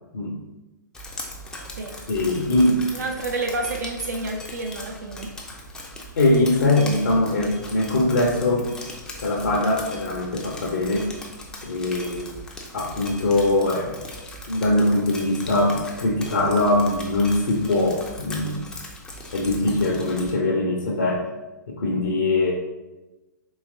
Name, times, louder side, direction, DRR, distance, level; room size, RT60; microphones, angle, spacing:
Drip, 0.9-20.3, left 1 dB, 5° left, 0.4 m, -39 dB
voice 1, 2.1-2.8 6.2-8.7 9.2-11.1 11.6-12.3 12.7-14.0 14.5-18.6 19.3-21.3 21.7-22.5, left 2 dB, 65° left, -1 dB, 0.6 m, -22 dB
voice 2, 2.9-5.3, right 2 dB, 60° right, 2 dB, 0.4 m, -29 dB
3.8 x 2.9 x 2.6 m, 1.1 s
figure-of-eight pair, 115°, 10 cm